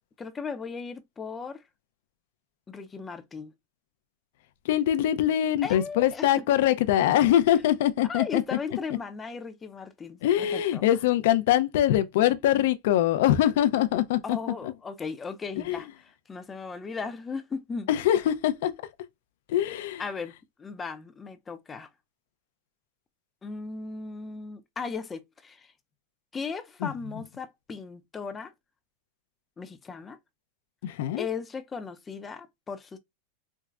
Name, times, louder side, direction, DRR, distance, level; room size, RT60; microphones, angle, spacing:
voice 1, 0.2-1.6 2.7-3.5 5.6-6.3 8.1-10.8 14.2-15.9 16.3-17.9 20.0-20.3 20.6-21.9 23.4-25.7 26.3-28.5 29.6-30.2 31.2-33.0, left 5 dB, 15° left, 0.5 m, -36 dB
voice 2, 4.7-8.4 10.2-14.4 15.7-15.8 17.9-18.7 19.5-20.0 26.8-26.9 30.8-31.2, left 12 dB, 70° left, 0.5 m, -23 dB
4.5 x 2.1 x 2.4 m
supercardioid pair, 135°, 0 cm